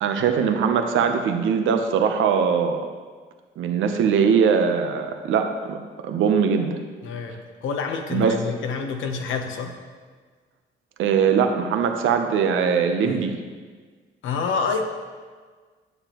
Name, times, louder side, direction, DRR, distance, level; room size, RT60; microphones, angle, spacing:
voice 1, 0.0-2.8 3.6-6.8 8.1-8.3 11.0-13.4, right 6 dB, 80° right, 6 dB, 0.8 m, -21 dB
voice 2, 7.0-9.7 13.0-13.3 14.2-14.8, left 5 dB, 85° left, 4 dB, 0.9 m, -28 dB
9.5 x 7.0 x 3.0 m, 1.5 s
cardioid pair, 90°, 20 cm